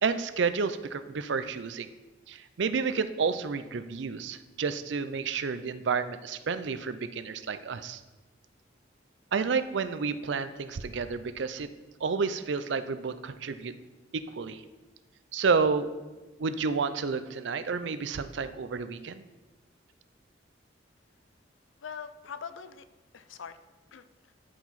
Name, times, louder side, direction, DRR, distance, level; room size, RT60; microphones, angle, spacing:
voice 1, 0.0-1.9 2.3-8.0 9.3-11.7 12.0-13.7 14.1-14.6 15.3-16.0 16.4-19.2, right 5 dB, 70° right, 12 dB, 0.5 m, -30 dB
voice 2, 21.8-22.9 23.1-23.6 23.9-24.3, left 6 dB, 80° left, 12 dB, 0.5 m, -42 dB
13.0 x 4.7 x 4.1 m, 1.2 s
head